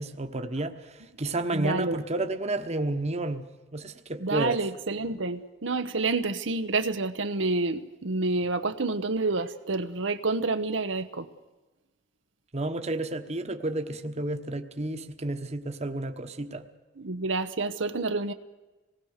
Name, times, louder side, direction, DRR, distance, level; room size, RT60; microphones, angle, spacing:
voice 1, 0.0-3.4 3.7-4.6 12.5-16.7, right 2 dB, 35° right, 1.2 m, -31 dB
voice 2, 1.5-2.0 4.2-11.3 17.0-18.3, right 3 dB, 80° right, 1.0 m, -28 dB
26.0 x 19.5 x 6.6 m
head